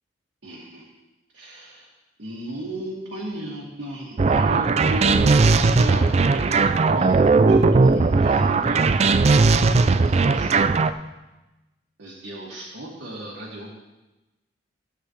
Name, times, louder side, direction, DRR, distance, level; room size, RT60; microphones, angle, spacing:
voice 1, 0.4-0.8 1.3-1.9 2.2-10.8 12.0-13.7, right 1 dB, 80° right, -5 dB, 2.1 m, -35 dB
sound 1, 4.2-10.9, right 3 dB, 35° right, 0.4 m, -18 dB
14.5 x 8.9 x 3.2 m, 1.0 s
head